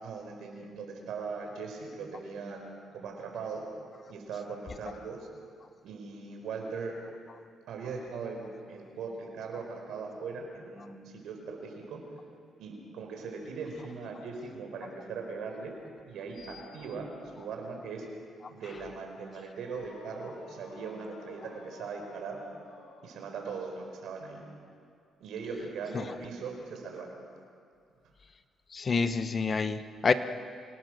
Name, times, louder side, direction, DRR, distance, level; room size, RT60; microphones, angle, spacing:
voice 1, 0.0-3.6 4.1-5.3 5.8-6.9 7.7-12.0 12.6-15.7 16.0-18.0 18.5-22.4 23.0-24.4 25.2-27.2, right 4 dB, 80° right, 2 dB, 4.8 m, -40 dB
sound 1, 19.6-23.6, left 2 dB, 75° left, 7.7 m, -53 dB
voice 2, 28.7-30.1, left 4 dB, 40° left, 10 dB, 1.2 m, -28 dB
27.0 x 18.0 x 6.6 m, 2.3 s
cardioid pair, 90°, 0 cm